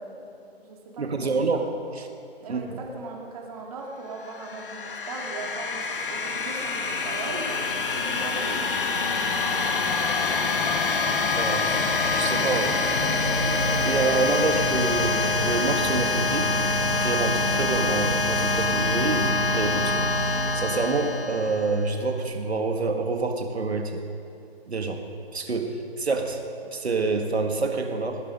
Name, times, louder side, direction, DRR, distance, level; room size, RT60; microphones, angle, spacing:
voice 1, 0.0-1.6 2.4-10.9, right 3 dB, 35° right, 0 dB, 2.2 m, -39 dB
voice 2, 1.0-1.7 2.0-2.1 2.5-2.6 11.4-16.5 17.0-24.0 24.7-25.0 25.3-26.4 26.7-28.2, right 3 dB, 80° right, 4 dB, 1.9 m, -27 dB
sound 1, 4.2-21.9, left 3 dB, 55° left, 1.5 m, -25 dB
20.0 x 9.1 x 5.3 m, 2.5 s
figure-of-eight pair, 150°, 32 cm